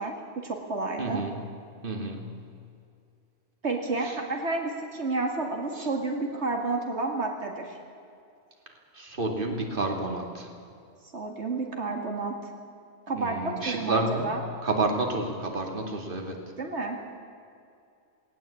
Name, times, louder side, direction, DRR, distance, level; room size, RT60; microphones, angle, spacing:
voice 1, 0.0-1.2 3.6-7.8 11.1-12.5 13.1-14.5 16.6-17.0, right 3 dB, 80° right, 2 dB, 2.4 m, -30 dB
voice 2, 1.0-1.3 1.8-2.3 4.0-4.1 5.8-5.9 8.9-10.5 13.2-14.3 14.6-16.4, right 2 dB, 50° right, 2 dB, 2.7 m, -30 dB
18.5 x 18.0 x 8.5 m, 2.4 s
omnidirectional pair, 1.1 m